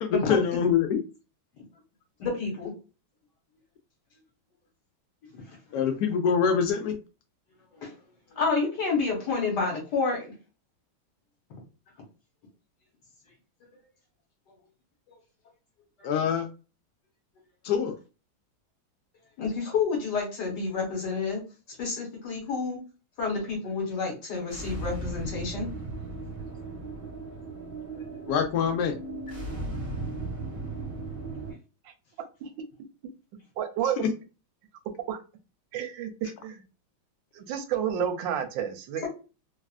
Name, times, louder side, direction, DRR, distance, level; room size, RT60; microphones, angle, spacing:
voice 1, 0.0-1.0 5.7-7.0 16.0-16.5 17.6-17.9 28.3-28.9, left 7 dB, 80° left, 5 dB, 0.8 m, -24 dB
voice 2, 2.2-2.7 5.5-5.6 7.7-7.9 8.3-10.3 19.4-21.4 21.8-22.8 23.2-25.7, left 4 dB, 60° left, -1 dB, 1.7 m, -29 dB
sound 1, 24.5-31.5, right 2 dB, 20° right, 0.9 m, -36 dB
voice 3, 33.6-34.0 35.1-35.2 35.7-36.6 37.3-39.1, right 9 dB, 80° right, 7 dB, 1.2 m, -30 dB
3.2 x 2.4 x 2.3 m, 0.32 s
omnidirectional pair, 2.1 m